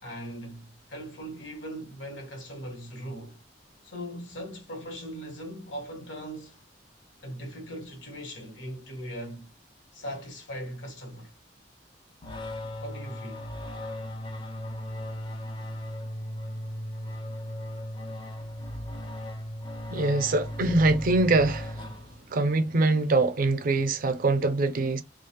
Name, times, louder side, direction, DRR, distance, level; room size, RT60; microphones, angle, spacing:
voice 1, 0.0-3.4 3.8-6.6 7.2-9.5 9.9-11.3 12.8-13.5, equal, 85° left, 1.1 m, -39 dB
sound 1, 12.2-22.5, equal, 25° left, 0.4 m, -37 dB
voice 2, 19.9-21.9 22.3-25.0, right 2 dB, 50° right, 0.4 m, -23 dB
2.4 x 2.0 x 2.8 m
head